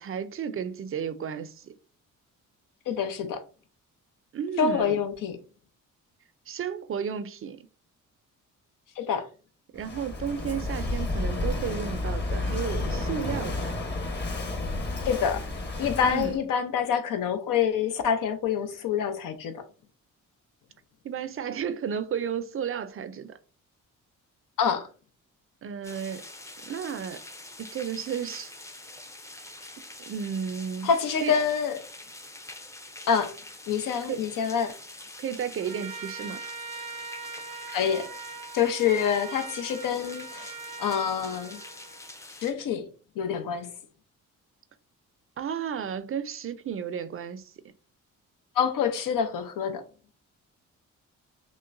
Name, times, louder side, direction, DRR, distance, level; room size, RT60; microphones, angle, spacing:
voice 1, 0.0-1.7 4.3-5.0 6.5-7.7 9.7-13.7 16.0-16.3 21.0-23.4 25.6-26.2 26.7-27.2 27.6-28.5 30.1-30.9 31.2-31.4 34.1-34.2 35.2-36.4 45.4-47.5, right 7 dB, 40° right, 0.4 m, -33 dB
voice 2, 2.9-3.4 4.6-5.4 9.0-9.3 15.0-15.4 15.8-19.6 24.6-24.9 30.8-31.8 33.1-33.3 33.7-34.7 37.7-38.1 38.5-40.5 40.8-41.6 42.4-42.9 43.2-43.7 48.6-49.8, left 7 dB, 80° left, 0.7 m, -26 dB
Walk footsteps / Wind / Waves surf, 9.8-16.4, left 2 dB, 35° left, 1.1 m, -31 dB
sound 1, 25.8-42.5, left 2 dB, 10° left, 0.5 m, -45 dB
Trumpet, 35.6-42.1, right 5 dB, 80° right, 0.7 m, -41 dB
5.9 x 2.1 x 2.5 m
cardioid pair, 90°, 32 cm